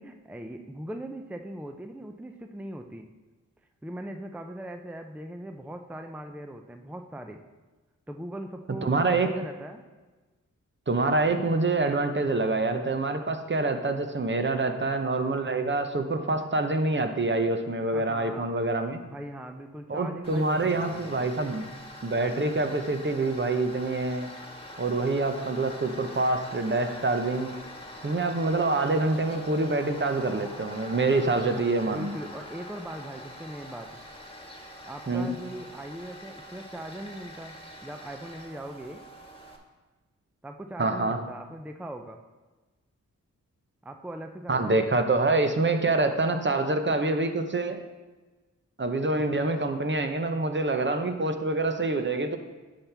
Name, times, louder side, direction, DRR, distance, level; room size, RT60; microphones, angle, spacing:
voice 1, 0.0-3.1 3.8-7.4 8.1-9.8 14.6-15.0 17.9-18.5 19.0-21.3 31.0-31.2 31.8-34.0 34.8-39.0 40.4-42.2 43.8-45.3, right 1 dB, 5° right, 6 dB, 0.5 m, -40 dB
voice 2, 8.8-9.3 10.9-19.0 19.9-21.7 22.0-24.3 24.8-27.5 28.0-32.1 35.1-35.3 40.8-41.2 44.5-47.8 48.8-52.4, right 2 dB, 35° right, 7 dB, 0.8 m, -26 dB
Tools, 20.2-39.6, left 1 dB, 15° left, 1.5 m, -44 dB
10.0 x 5.8 x 3.4 m, 1.3 s
cardioid pair, 40°, 33 cm